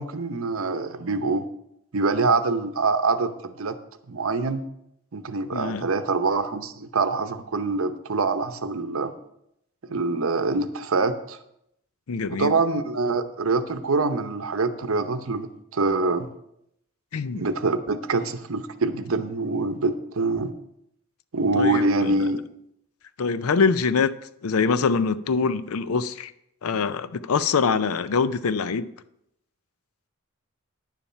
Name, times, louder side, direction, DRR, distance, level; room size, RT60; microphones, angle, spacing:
voice 1, 0.0-1.4 1.9-3.8 4.1-4.6 5.1-9.1 9.8-11.4 12.3-16.3 17.4-20.5 21.3-22.4, right 3 dB, 70° right, 0.8 m, -25 dB
voice 2, 5.5-5.9 12.1-12.5 17.1-17.4 21.6-22.1 23.2-24.1 24.4-26.3 26.6-28.8, left 5 dB, 85° left, 0.5 m, -24 dB
10.0 x 7.1 x 5.6 m
head